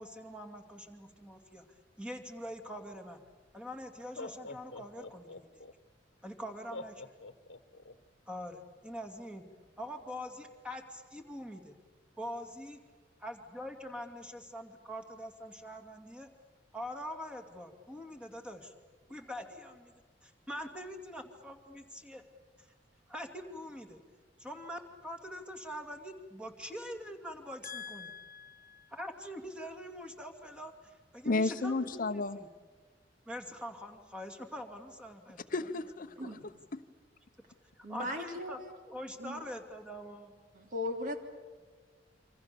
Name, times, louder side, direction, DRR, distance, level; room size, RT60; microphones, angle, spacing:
voice 1, 0.0-1.6 2.0-3.2 3.5-5.6 6.2-7.1 8.3-9.4 9.8-11.8 12.2-12.8 13.2-16.3 16.7-18.7 19.1-19.9 20.2-22.2 22.6-22.7 23.1-24.0 24.4-28.1 28.9-32.5 33.3-35.4 36.2-36.4 37.8-40.3, equal, 5° right, 5 dB, 2.6 m, -44 dB
Laughter, 3.3-3.4 4.0-5.7 6.7-7.9, left 2 dB, 75° left, 1.2 m, -45 dB
voice 2, 27.6-28.9 31.2-32.4 35.5-36.3 36.7-36.8, left 3 dB, 50° left, 10 dB, 0.9 m, -34 dB
voice 3, 36.2-36.5 37.8-38.7 39.2-39.4 40.5-41.2, left 1 dB, 45° right, 4 dB, 3.2 m, -38 dB
28.0 x 26.0 x 7.0 m, 1.5 s
head